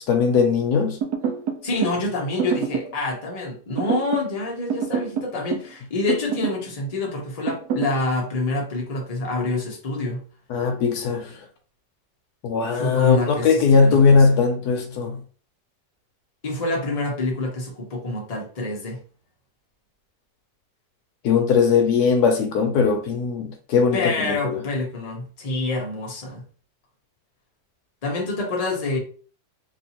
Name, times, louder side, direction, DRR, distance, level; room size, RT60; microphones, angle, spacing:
voice 1, 0.1-1.0 10.5-11.3 12.4-15.2 21.2-24.6, left 5 dB, 75° left, 1.1 m, -19 dB
sound 1, 1.0-2.0 2.4-3.0 3.8-4.3 4.7-5.7 6.1-6.6 7.5-8.0, right 7 dB, 75° right, 1.1 m, -27 dB
voice 2, 1.6-10.2 12.7-14.4 16.4-19.0 23.9-26.4 28.0-29.0, left 2 dB, 35° left, 0.7 m, -27 dB
3.1 x 2.7 x 2.9 m
omnidirectional pair, 1.8 m